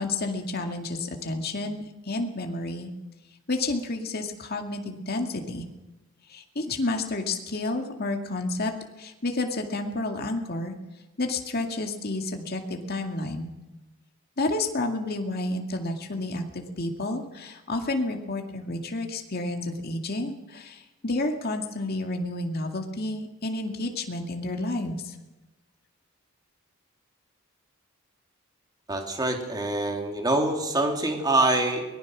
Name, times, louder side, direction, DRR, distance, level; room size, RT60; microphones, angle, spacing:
voice 1, 0.0-2.9 3.5-5.7 6.3-8.7 9.0-10.7 11.2-13.5 14.4-25.2, left 2 dB, 45° left, 3 dB, 2.1 m, -30 dB
voice 2, 28.9-31.8, right 2 dB, 20° right, 3 dB, 3.0 m, -25 dB
23.5 x 19.5 x 6.2 m, 1.1 s
head